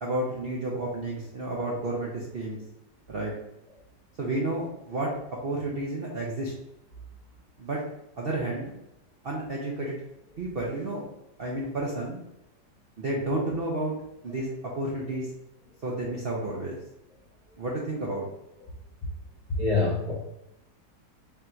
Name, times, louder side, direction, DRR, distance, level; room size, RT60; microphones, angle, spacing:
voice 1, 0.0-2.6 3.1-3.3 4.2-5.1 5.4-6.5 7.6-7.8 8.2-8.7 9.2-10.0 10.4-11.0 11.4-12.2 13.0-13.9 14.2-15.3 15.8-16.8 17.6-18.2, right 2 dB, 65° right, -3 dB, 0.5 m, -31 dB
voice 2, 19.6-20.1, left 3 dB, 25° left, -6 dB, 0.9 m, -25 dB
3.4 x 2.6 x 4.3 m, 0.87 s
omnidirectional pair, 2.0 m